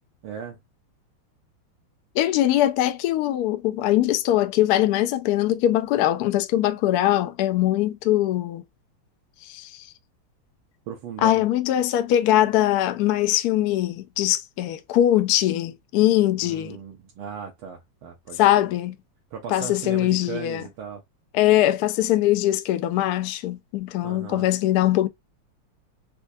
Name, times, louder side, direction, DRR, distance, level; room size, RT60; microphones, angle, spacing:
voice 1, 0.2-0.6 10.9-11.4 16.4-18.7 19.3-21.0 24.0-24.5, right 7 dB, 85° right, 1.6 m, -37 dB
voice 2, 2.1-8.6 9.4-9.9 11.2-16.8 18.4-18.9 19.5-20.7 21.3-25.1, left 13 dB, 80° left, 0.8 m, -22 dB
4.4 x 2.3 x 2.6 m
omnidirectional pair, 2.2 m